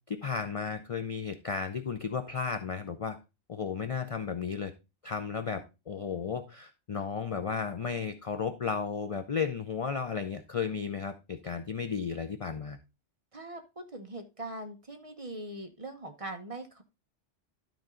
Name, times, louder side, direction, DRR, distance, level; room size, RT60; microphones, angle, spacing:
voice 1, 0.1-3.2 3.5-4.7 5.0-12.8, left 5 dB, 40° left, 8 dB, 0.5 m, -34 dB
voice 2, 13.3-16.8, right 1 dB, 30° right, 5 dB, 1.1 m, -41 dB
12.5 x 4.5 x 3.7 m, 0.28 s
omnidirectional pair, 1.2 m